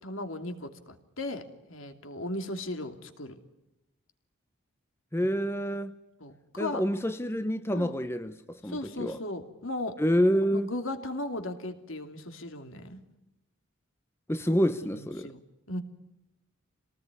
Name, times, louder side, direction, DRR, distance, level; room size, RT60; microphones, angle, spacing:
voice 1, 0.0-1.4 1.7-3.3 5.2-5.3 6.2-6.8 7.7-8.0 8.6-10.0 10.5-13.0 14.9-15.4 15.7-15.8, left 1 dB, 70° left, 2.9 m, -36 dB
voice 2, 5.1-5.9 6.6-9.2 10.0-10.7 14.3-15.3, equal, 10° left, 0.9 m, -27 dB
27.0 x 19.0 x 9.7 m
head